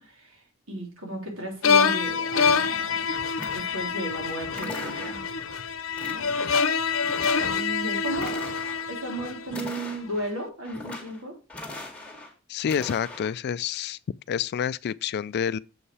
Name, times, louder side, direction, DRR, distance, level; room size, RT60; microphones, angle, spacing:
voice 1, 0.0-3.2 3.5-5.2 6.1-6.4 7.4-8.4 8.9-11.4, right 1 dB, 85° right, 3.3 m, -35 dB
sound 1, 1.6-9.8, left 5 dB, 80° left, 0.7 m, -26 dB
sound 2, 3.4-4.0 4.5-5.4 6.0-6.6 6.9-7.6 8.1-8.9 9.5-10.3 10.6-11.2 11.5-12.3 12.6-13.3, left 2 dB, 5° left, 2.1 m, -40 dB
voice 2, 12.5-14.0 14.3-15.6, left 8 dB, 55° left, 0.3 m, -28 dB
7.2 x 5.6 x 4.7 m
head